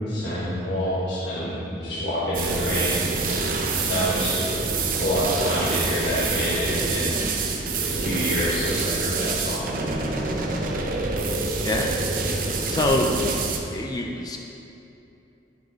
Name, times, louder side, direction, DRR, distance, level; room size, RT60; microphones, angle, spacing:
voice 1, 0.0-3.0 3.3-3.5 3.9-4.4 5.0-7.2 7.8-9.7, equal, 70° left, -10 dB, 1.4 m, -27 dB
sound 1, 2.3-13.6, right 3 dB, 50° right, 0.7 m, -26 dB
voice 2, 11.6-13.2 13.7-14.4, left 1 dB, 20° left, 2 dB, 0.4 m, -26 dB
9.7 x 5.1 x 4.0 m, 2.8 s
head